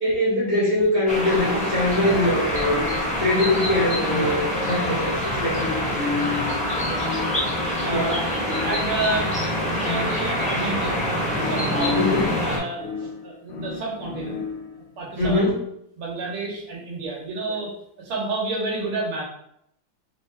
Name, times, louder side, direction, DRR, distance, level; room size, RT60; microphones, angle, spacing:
voice 1, 0.0-2.8 3.2-6.2 7.9-8.0 11.9-12.3 15.2-15.6 17.5-17.6, left 1 dB, 40° left, -7 dB, 0.6 m, -23 dB
sound 1, 1.1-12.6, equal, 5° left, 0.8 m, -25 dB
sound 2, 1.3-14.9, left 5 dB, 75° left, 1.5 m, -34 dB
voice 2, 6.8-8.2 8.6-11.0 11.3-12.0 12.4-14.4 15.0-15.5 16.0-19.2, right 3 dB, 85° right, -3 dB, 2.0 m, -30 dB
4.0 x 2.7 x 3.3 m, 0.75 s
omnidirectional pair, 2.3 m